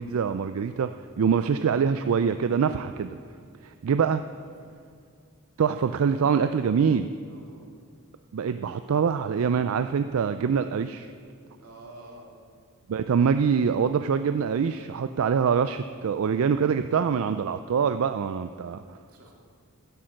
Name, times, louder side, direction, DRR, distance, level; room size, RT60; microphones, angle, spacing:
voice 1, 0.0-3.2 3.6-4.2 5.6-7.1 8.3-11.1 12.9-18.8, right 6 dB, 65° right, 10 dB, 0.4 m, -24 dB
voice 2, 7.3-7.7 11.6-12.4 18.8-19.3, right 2 dB, 90° right, -1 dB, 2.5 m, -49 dB
11.5 x 10.5 x 6.4 m, 2.2 s
head